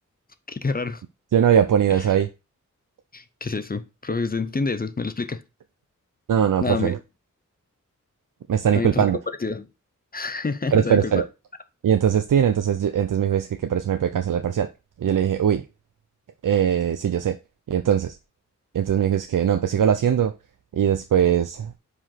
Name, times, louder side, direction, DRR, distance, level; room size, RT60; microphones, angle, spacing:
voice 1, 0.5-1.0 1.9-2.0 3.1-5.4 6.6-7.0 8.7-9.1 9.4-9.7 10.1-11.1, left 4 dB, 30° left, 0.6 m, -28 dB
voice 2, 1.3-2.3 6.3-7.0 8.5-9.2 10.7-11.2 11.8-14.7 15.0-15.6 16.4-17.4 17.7-18.2 18.7-20.3 20.7-21.7, right 8 dB, 90° right, 0.6 m, -20 dB
5.0 x 4.9 x 5.6 m
wide cardioid pair, 110°, 31 cm